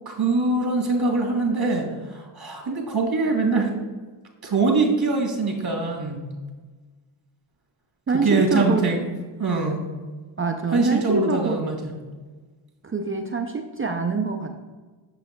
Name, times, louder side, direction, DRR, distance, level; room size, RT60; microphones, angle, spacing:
voice 1, 0.1-3.7 4.4-6.3 8.1-9.1 9.4-9.8 10.7-11.9, right 3 dB, 50° right, 2 dB, 1.8 m, -23 dB
voice 2, 8.1-8.8 10.4-11.6 12.8-14.6, right 3 dB, 30° right, 4 dB, 0.5 m, -25 dB
7.3 x 6.9 x 2.2 m, 1.3 s
cardioid pair, 80°, 48 cm